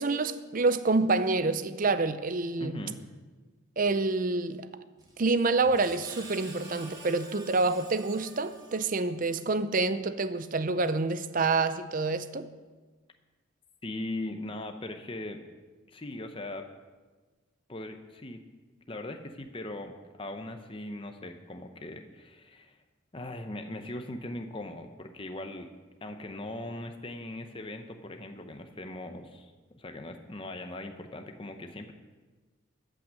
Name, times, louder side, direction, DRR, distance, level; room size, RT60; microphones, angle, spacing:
voice 1, 0.0-2.9 3.8-4.7 5.2-12.5, right 3 dB, 40° right, 0.5 m, -27 dB
voice 2, 2.6-3.0 13.8-15.4 15.9-16.7 17.7-18.4 18.9-22.8 23.1-25.7 26.0-31.9, left 1 dB, 25° left, 0.7 m, -39 dB
Screech, 5.0-9.3, right 2 dB, 20° right, 1.6 m, -48 dB
13.5 x 6.1 x 7.6 m
head